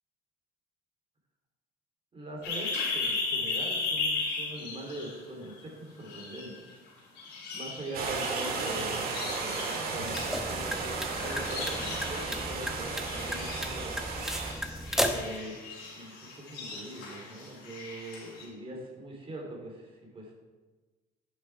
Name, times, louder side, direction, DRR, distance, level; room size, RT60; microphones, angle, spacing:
voice 1, 2.1-14.0 15.1-15.6 15.9-20.3, right 1 dB, 35° right, -1 dB, 3.0 m, -42 dB
sound 1, 2.4-5.6 6.0-6.9 7.2-18.4, left 3 dB, 90° left, 3.4 m, -37 dB
sound 2, 7.9-14.5, right 4 dB, 60° right, 1.7 m, -34 dB
sound 3, 9.9-15.4, equal, 5° right, 0.8 m, -35 dB
9.9 x 6.5 x 4.7 m, 1.3 s
cardioid pair, 110°, 17 cm